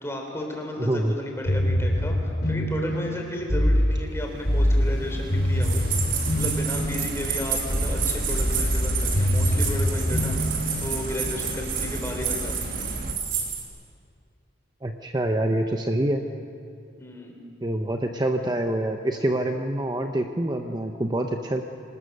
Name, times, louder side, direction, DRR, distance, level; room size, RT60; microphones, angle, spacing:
voice 1, 0.0-5.8 6.3-10.4 10.8-12.8 17.0-17.4, left 1 dB, 15° left, 1 dB, 3.5 m, -33 dB
voice 2, 0.8-1.1 14.8-16.2 17.6-21.6, right 1 dB, 20° right, 4 dB, 0.8 m, -26 dB
sound 1, 1.5-11.2, equal, 60° left, 3.8 m, -25 dB
sound 2, 4.0-13.1, right 1 dB, 50° right, 1.8 m, -34 dB
sound 3, 5.6-13.6, right 7 dB, 85° right, 3.8 m, -30 dB
25.5 x 19.5 x 6.6 m, 2.4 s
head